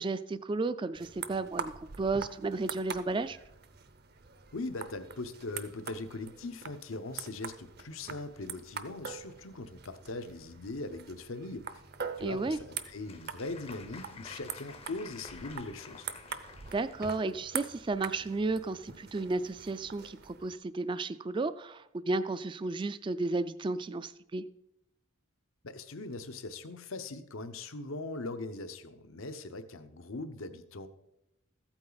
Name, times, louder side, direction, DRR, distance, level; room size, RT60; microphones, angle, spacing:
voice 1, 0.0-3.4 12.2-12.6 16.7-24.4, right 3 dB, 25° right, 14 dB, 0.3 m, -33 dB
sound 1, 0.9-20.5, right 6 dB, 50° right, 0.7 m, -44 dB
voice 2, 4.5-11.7 12.2-16.0 25.6-30.9, left 2 dB, 75° left, 10 dB, 0.8 m, -40 dB
Applause, 12.4-17.2, left 5 dB, 25° left, 0.6 m, -51 dB
14.5 x 8.8 x 4.0 m, 0.84 s
head